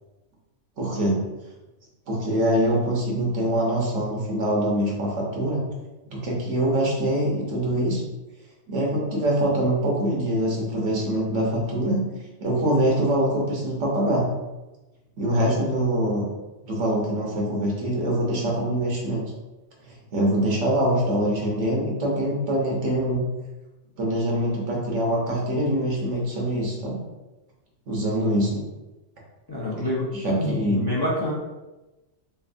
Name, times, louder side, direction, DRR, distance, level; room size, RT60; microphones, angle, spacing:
voice 1, 0.8-1.2 2.1-5.7 6.1-8.0 8.7-12.0 12.4-14.3 15.2-16.3 16.6-19.2 19.8-23.2 24.0-27.0 27.9-28.6 30.1-30.9, right 1 dB, 80° right, -2 dB, 1.3 m, -24 dB
voice 2, 29.5-31.3, left 1 dB, 35° left, -6 dB, 0.4 m, -27 dB
3.3 x 3.3 x 2.5 m, 1.1 s
omnidirectional pair, 1.2 m